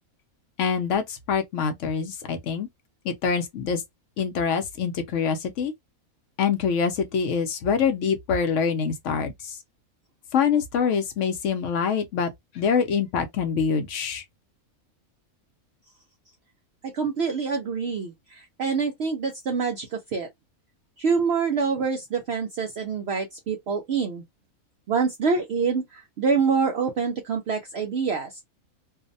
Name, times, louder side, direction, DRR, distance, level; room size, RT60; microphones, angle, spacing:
voice 1, 0.6-2.7 3.0-3.8 4.2-5.7 6.4-9.6 10.3-14.2, left 6 dB, 70° left, 0.8 m, -25 dB
voice 2, 16.8-20.3 21.0-24.2 24.9-28.4, right 5 dB, 65° right, 0.6 m, -26 dB
2.6 x 2.1 x 2.5 m
omnidirectional pair, 1.5 m